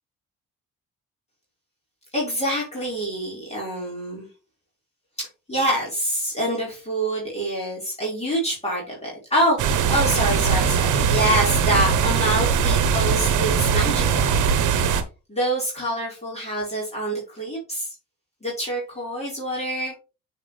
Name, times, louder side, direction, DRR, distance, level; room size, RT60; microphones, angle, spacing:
voice 1, 2.1-4.3 5.2-14.4 15.3-17.9 18.4-19.9, right 1 dB, 20° left, -4 dB, 4.7 m, -26 dB
sound 1, 9.6-15.0, right 6 dB, 80° right, 1.1 m, -20 dB
8.2 x 4.9 x 3.3 m, 0.30 s
cardioid pair, 90°, 30 cm